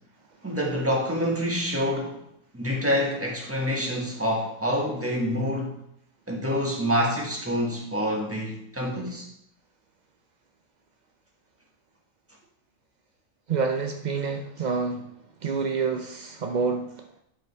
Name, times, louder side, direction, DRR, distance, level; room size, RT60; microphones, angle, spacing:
voice 1, 0.4-2.2 2.5-5.8 6.3-9.3, equal, 10° right, 1.5 m, -27 dB
voice 2, 13.5-15.1 15.4-16.9, right 5 dB, 65° right, 0.4 m, -27 dB
11.5 x 5.3 x 3.3 m
omnidirectional pair, 1.5 m